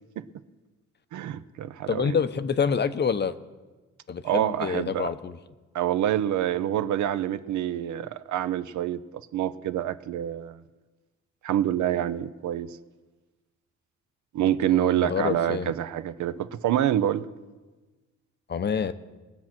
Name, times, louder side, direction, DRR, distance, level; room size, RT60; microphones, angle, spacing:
voice 1, 1.1-2.2 4.2-5.1 5.7-10.6 11.4-12.8 14.3-17.3, right 11 dB, 75° right, 13 dB, 0.7 m, -27 dB
voice 2, 1.9-3.4 4.1-5.4 14.6-15.7 18.5-18.9, left 6 dB, 35° left, 12 dB, 0.7 m, -27 dB
20.0 x 7.4 x 6.0 m, 1.2 s
cardioid pair, 90°, 30 cm